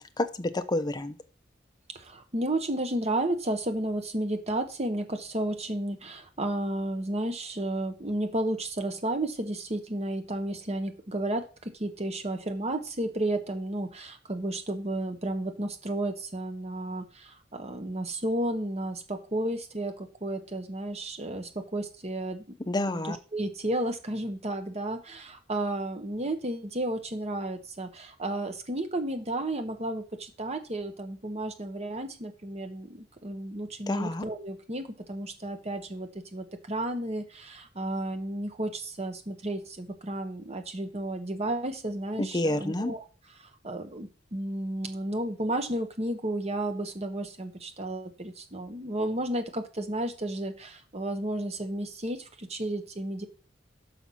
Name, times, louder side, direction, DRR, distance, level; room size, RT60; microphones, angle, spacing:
voice 1, 0.2-1.2 22.7-23.2 33.9-34.2 42.2-42.9, left 1 dB, 20° left, 11 dB, 0.6 m, -29 dB
voice 2, 1.9-22.4 22.9-43.0 43.6-53.3, right 1 dB, 35° right, 7 dB, 1.2 m, -32 dB
5.9 x 5.9 x 5.6 m, 0.36 s
head